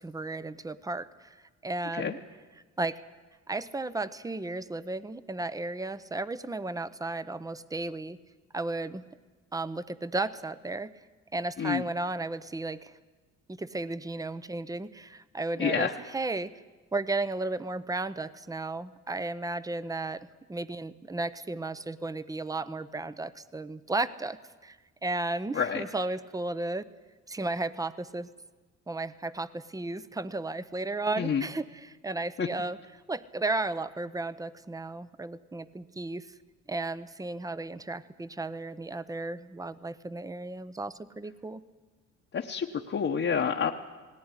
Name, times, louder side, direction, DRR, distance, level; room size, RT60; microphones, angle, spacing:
voice 1, 0.0-1.4 1.6-2.2 2.8-3.0 3.5-8.2 8.5-9.0 9.5-10.9 11.3-12.9 13.5-16.5 16.9-24.8 25.0-26.8 27.3-28.3 28.9-32.8 33.1-36.3 36.7-41.6, right 2 dB, 10° right, 15 dB, 0.7 m, -34 dB
voice 2, 15.6-15.9 25.5-25.8 31.2-31.5 32.4-32.5 42.3-43.7, left 6 dB, 45° left, 0 dB, 1.1 m, -28 dB
18.0 x 18.0 x 9.8 m, 1.3 s
cardioid pair, 90°, 30 cm